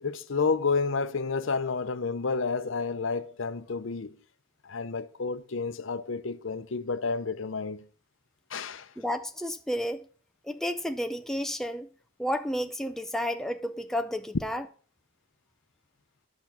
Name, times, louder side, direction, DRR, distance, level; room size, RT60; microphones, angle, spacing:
voice 1, 0.0-4.2 4.6-7.9 8.5-8.9, left 4 dB, 70° left, 0.7 m, -30 dB
voice 2, 9.0-10.1 10.4-11.9 12.2-14.6, equal, ahead, 0.5 m, -31 dB
10.5 x 6.1 x 5.8 m
head